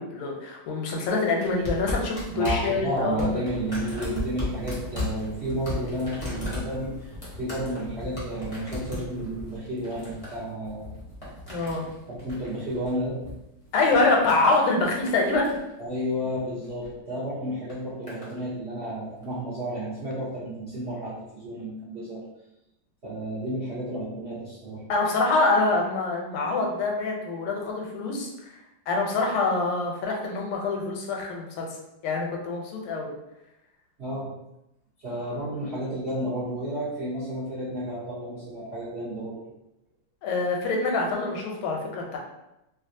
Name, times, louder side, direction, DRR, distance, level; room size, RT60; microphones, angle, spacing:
voice 1, 0.0-3.3 11.5-11.9 13.7-15.6 24.9-28.6 28.9-31.7 32.0-33.1 40.2-42.2, left 3 dB, 85° left, 0 dB, 1.5 m, -25 dB
sound 1, 1.4-13.3 13.6-14.6 15.0-15.7 16.6-16.9 17.7-18.3 19.2-19.3, left 2 dB, 50° left, 0.4 m, -36 dB
voice 2, 2.3-7.1 7.4-10.9 12.1-13.2 15.8-22.2 23.0-24.8 34.0-34.3 35.0-39.4, right 1 dB, 65° right, -11 dB, 0.6 m, -31 dB
3.3 x 2.4 x 2.6 m, 0.89 s
omnidirectional pair, 2.3 m